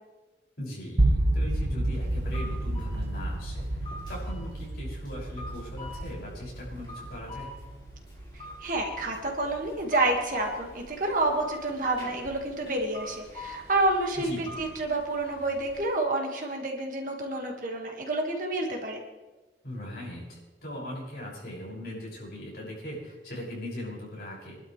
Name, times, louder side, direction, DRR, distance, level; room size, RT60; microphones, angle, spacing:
voice 1, 0.6-7.5 14.2-14.6 19.6-24.6, left 1 dB, 60° left, -5 dB, 6.6 m, -39 dB
sound 1, 1.0-11.0, right 1 dB, 75° right, 1.4 m, -31 dB
sound 2, 1.9-15.8, left 1 dB, 25° left, 3.3 m, -46 dB
voice 2, 8.3-19.0, right 2 dB, 45° right, 1 dB, 2.0 m, -29 dB
25.5 x 12.0 x 3.4 m, 1.1 s
head